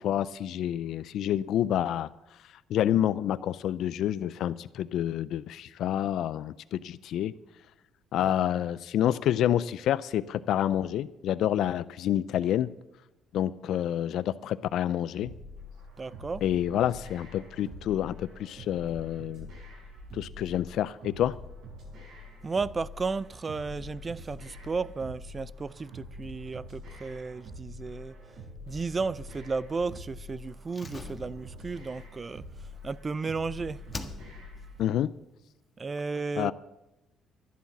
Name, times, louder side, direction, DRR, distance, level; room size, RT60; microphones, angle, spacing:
voice 1, 0.0-2.1 2.7-7.3 8.1-12.7 13.3-15.3 16.4-19.5 20.1-21.3 34.8-35.1 36.4-36.5, left 11 dB, 70° left, 0.4 m, -28 dB
sound 1, 15.2-34.8, left 1 dB, 75° right, 5.0 m, -45 dB
voice 2, 16.0-16.4 22.4-28.1 28.7-32.4 32.8-33.8 35.8-36.5, right 4 dB, 30° right, 0.5 m, -33 dB
Slam, 30.7-33.4 33.9-34.7 34.9-35.0, left 3 dB, 25° left, 1.5 m, -44 dB
11.5 x 10.5 x 7.2 m
supercardioid pair, 80°, 0 cm